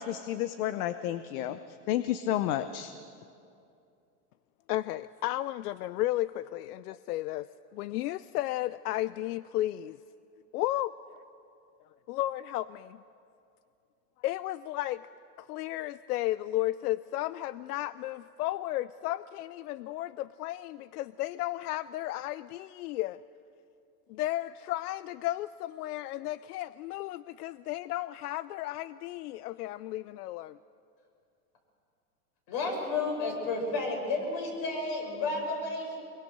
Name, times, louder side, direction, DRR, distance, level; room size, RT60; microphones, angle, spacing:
voice 1, 0.0-1.6 1.9-2.9, left 12 dB, 65° left, 12 dB, 0.9 m, -31 dB
voice 2, 4.7-10.0 10.5-11.2 12.1-13.0 14.2-15.1 15.4-23.2 24.1-30.6, left 15 dB, 85° left, 17 dB, 0.6 m, -34 dB
voice 3, 32.5-36.0, left 3 dB, 50° left, 2 dB, 6.6 m, -31 dB
24.5 x 23.0 x 6.6 m, 2.6 s
supercardioid pair, 135°, 45 cm